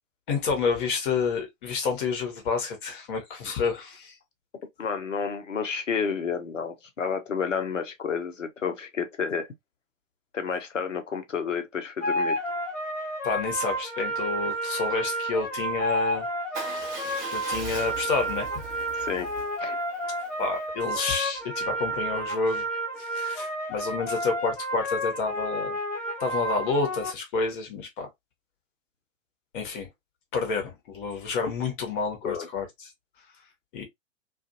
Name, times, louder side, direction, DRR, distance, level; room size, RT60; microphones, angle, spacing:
voice 1, 0.3-4.1 13.2-16.3 17.3-18.5 20.4-22.6 23.0-25.8 26.2-28.1 29.5-29.9 30.3-32.6 33.7-33.9, left 4 dB, 40° left, 1.2 m, -29 dB
voice 2, 4.8-9.5 10.3-12.4 19.0-19.3 19.6-19.8 32.2-32.5, left 6 dB, 75° left, 0.8 m, -30 dB
sound 1, 12.0-27.1, right 1 dB, 5° left, 0.4 m, -31 dB
Motorcycle / Engine starting / Idling, 16.5-20.6, right 5 dB, 20° right, 0.9 m, -40 dB
2.5 x 2.5 x 2.5 m
figure-of-eight pair, 105°, 38 cm